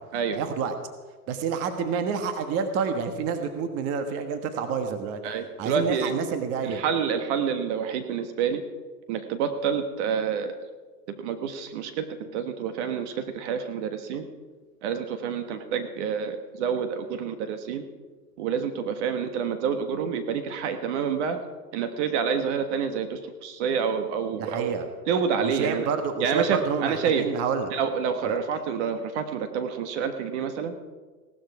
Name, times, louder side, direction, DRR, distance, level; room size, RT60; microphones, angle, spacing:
voice 1, 0.3-0.7 1.3-5.2 5.6-6.8 24.3-24.9 25.4-27.7 28.2-28.4, right 6 dB, 30° right, 7 dB, 1.4 m, -28 dB
voice 2, 5.2-6.1 6.6-8.6 9.1-10.6 11.2-14.3 14.8-17.8 18.4-21.4 21.7-24.8 25.1-25.9 26.2-27.3 27.7-30.7, right 7 dB, 45° right, 8 dB, 1.5 m, -28 dB
17.5 x 12.5 x 4.8 m, 1.3 s
hypercardioid pair, 135°, 47 cm